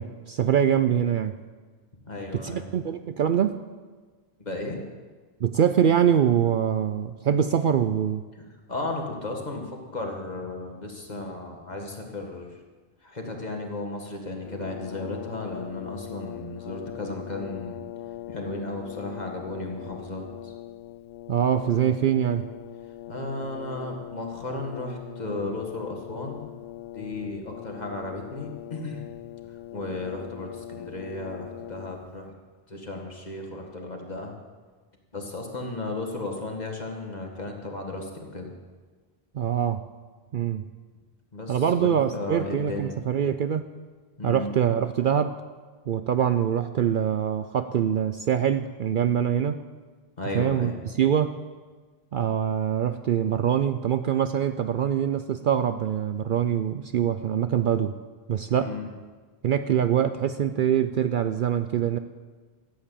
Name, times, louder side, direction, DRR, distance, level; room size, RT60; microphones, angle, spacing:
voice 1, 0.0-1.4 2.3-3.6 5.4-8.3 21.3-22.5 39.3-39.8 40.3-40.6 41.5-43.7 44.2-45.3 45.9-49.6 50.3-51.4 52.1-58.0 58.3-58.7 59.4-62.0, right 9 dB, 60° right, 10 dB, 0.6 m, -24 dB
voice 2, 2.0-2.8 4.4-4.8 8.4-8.5 8.7-12.6 13.0-17.9 18.3-20.5 23.1-26.5 26.9-29.1 29.4-32.3 32.7-34.3 35.1-38.5 41.3-42.9 44.2-44.5 50.2-50.8 58.6-58.9, left 2 dB, 40° left, 2 dB, 2.0 m, -34 dB
Brass instrument, 14.4-32.2, left 13 dB, 90° left, 0.9 m, -41 dB
14.0 x 8.1 x 8.4 m, 1.4 s
omnidirectional pair, 1.1 m